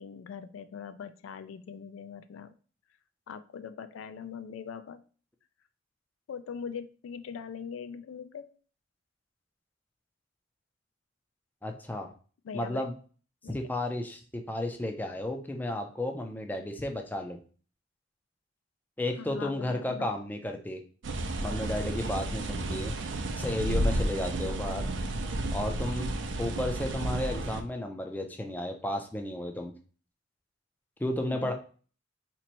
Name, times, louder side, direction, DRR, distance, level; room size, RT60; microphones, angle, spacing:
voice 1, 0.0-2.5 3.3-5.0 6.3-8.5 12.4-12.9 13.4-13.6 19.2-20.1 31.3-31.5, left 6 dB, 85° left, 12 dB, 0.3 m, -41 dB
voice 2, 11.6-12.1 12.5-12.9 13.5-17.4 19.0-20.8 21.4-23.0 23.4-24.9 25.5-26.1 26.4-29.7 31.0-31.5, left 1 dB, 10° left, 4 dB, 0.4 m, -33 dB
sound 1, 21.0-27.6, right 1 dB, 70° right, 0.5 m, -32 dB
3.0 x 2.6 x 4.1 m, 0.40 s
head